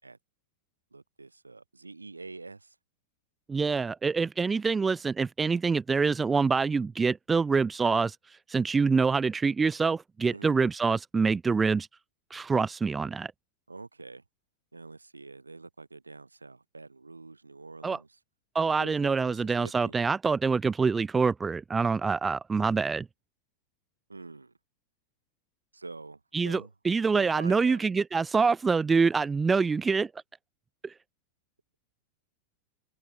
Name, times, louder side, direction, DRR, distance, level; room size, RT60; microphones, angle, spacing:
voice 1, 0.9-2.8 10.3-10.6 13.7-14.2 14.7-18.2 18.8-20.0 24.1-24.5 25.7-26.7 27.1-27.8, right 3 dB, 80° right, 7.5 m, -46 dB
voice 2, 3.5-8.2 8.5-11.9 12.3-13.3 17.8-18.0 18.5-23.1 26.3-30.1 30.8-30.9, right 4 dB, 15° right, 0.5 m, -26 dB
figure-of-eight pair, 90°, 0 cm